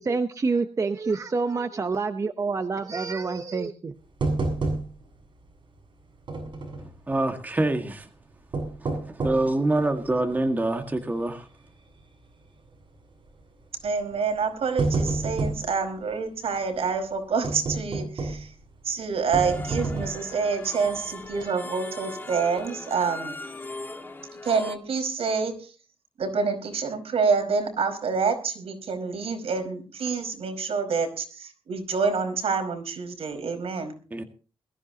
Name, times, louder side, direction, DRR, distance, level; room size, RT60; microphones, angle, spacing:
voice 1, 0.0-3.9, right 4 dB, 35° right, 8 dB, 0.9 m, -27 dB
sound 1, 4.2-5.2 5.5-5.6 6.3-6.9 8.3-9.5 10.1-10.2 10.8-11.1 11.4-11.5 12.6-12.9 13.8-14.0 14.4-15.7 17.4-18.6 19.3-20.3 20.8-21.0 21.3-21.4, right 3 dB, 55° right, 7.0 m, -29 dB
voice 2, 7.1-8.1 8.8-8.9 9.1-11.5 34.1-34.2, right 2 dB, 15° right, 4 dB, 1.8 m, -25 dB
voice 3, 13.8-18.5 18.8-23.4 24.4-25.7 26.2-34.0, right 5 dB, 75° right, 5 dB, 5.0 m, -27 dB
sound 2, 19.4-24.8, left 2 dB, 20° left, 1.9 m, -39 dB
21.5 x 14.5 x 2.9 m, 0.37 s
wide cardioid pair, 170°, 10 cm